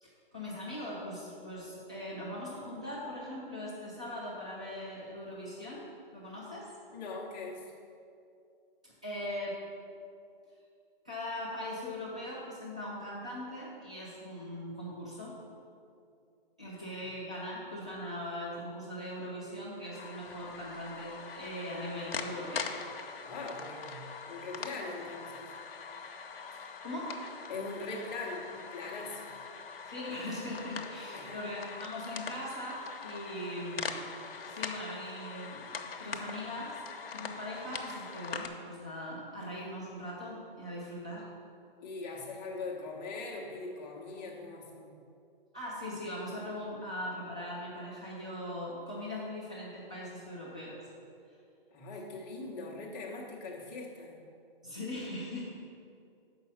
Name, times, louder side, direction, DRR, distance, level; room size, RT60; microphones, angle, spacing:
voice 1, 0.0-6.7 8.8-9.6 11.0-15.4 16.6-22.7 26.8-27.3 29.9-34.0 34.5-35.7 36.0-36.8 37.1-41.3 45.5-50.8 54.6-55.4, left 1 dB, 10° right, -8 dB, 0.3 m, -40 dB
voice 2, 6.9-7.7 16.8-16.9 23.2-25.5 27.5-29.2 31.1-31.4 41.8-45.0 51.7-54.2, left 3 dB, 20° left, -2 dB, 1.1 m, -41 dB
sound 1, 19.9-38.5, left 5 dB, 80° left, 0.9 m, -42 dB
6.7 x 5.4 x 7.1 m, 2.5 s
hypercardioid pair, 165°, 29 cm